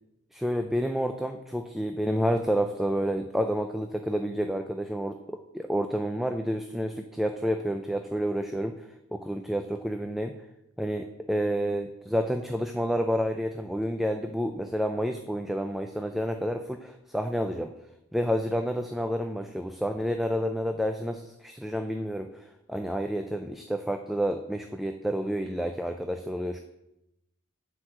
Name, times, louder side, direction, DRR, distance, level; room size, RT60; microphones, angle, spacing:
voice 1, 0.3-8.7 9.1-10.3 10.8-17.7 18.1-22.3 22.7-26.6, equal, ahead, 6 dB, 0.4 m, -29 dB
9.9 x 4.8 x 7.5 m, 0.88 s
head